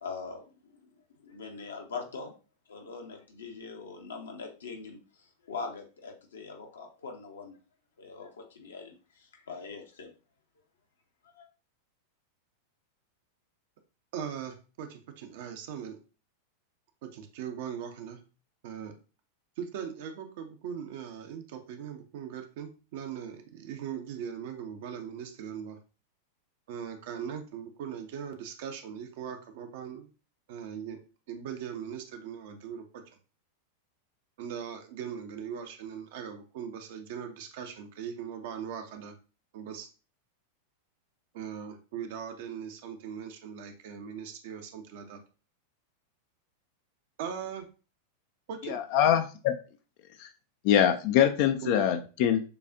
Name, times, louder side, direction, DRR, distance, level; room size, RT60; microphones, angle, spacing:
voice 1, 0.0-0.7 1.2-2.3 2.7-5.0 5.4-7.6 8.0-10.1 11.4-11.5, left 4 dB, 65° left, 2 dB, 0.9 m, -42 dB
voice 2, 14.1-16.0 17.0-18.2 18.6-18.9 19.6-25.8 26.7-30.1 30.5-31.0 31.3-33.0 34.4-39.1 39.5-39.9 41.3-45.2 47.2-47.7 48.5-48.8 51.6-51.8, right 8 dB, 50° right, 6 dB, 0.6 m, -40 dB
voice 3, 48.6-49.5 50.2-50.3 50.6-52.4, left 9 dB, 45° left, 7 dB, 0.4 m, -24 dB
6.7 x 2.4 x 2.6 m, 0.35 s
figure-of-eight pair, 90°, 0 cm